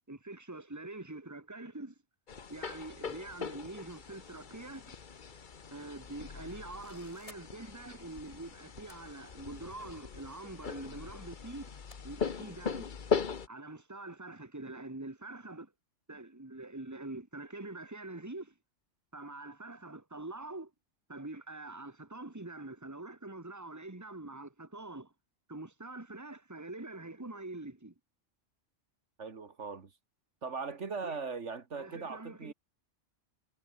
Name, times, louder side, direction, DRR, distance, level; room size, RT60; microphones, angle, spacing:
voice 1, 0.1-1.9 2.5-4.9 5.7-11.7 12.0-12.9 13.5-15.7 16.1-18.5 19.1-20.7 21.1-25.1 25.5-27.9 31.0-31.2 31.7-32.5, right 2 dB, 15° right, 2.1 m, -45 dB
sound 1, 2.3-13.5, left 6 dB, 40° left, 1.2 m, -40 dB
sound 2, 6.8-7.4 8.7-9.0 10.1-10.2 11.9-12.0, left 2 dB, 25° left, 2.5 m, -54 dB
voice 2, 29.2-29.9 30.4-32.5, right 4 dB, 70° right, 2.0 m, -39 dB
omnidirectional pair, 1.3 m